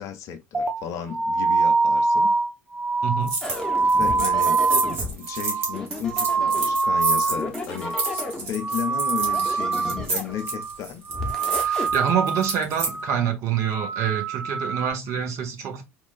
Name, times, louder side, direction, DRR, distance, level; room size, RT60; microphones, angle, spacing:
voice 1, 0.0-2.3 3.8-4.6 5.0-11.0, left 8 dB, 45° left, 0.5 m, -34 dB
sound 1, 0.5-7.5 7.8-8.3 8.6-10.0 10.3-10.8 11.1-12.5 12.9-13.2 13.6-14.9, right 4 dB, 15° right, 0.4 m, -24 dB
voice 2, 3.0-3.4 11.6-15.8, right 8 dB, 45° right, 0.8 m, -26 dB
sound 2, 3.3-3.6 3.9-12.9, right 3 dB, 65° right, 1.0 m, -30 dB
sound 3, 3.4-5.2 5.7-6.8 7.2-8.5 9.2-10.4 11.1-11.9, left 1 dB, 10° left, 0.8 m, -33 dB
3.1 x 2.3 x 2.4 m
figure-of-eight pair, 65°, 7 cm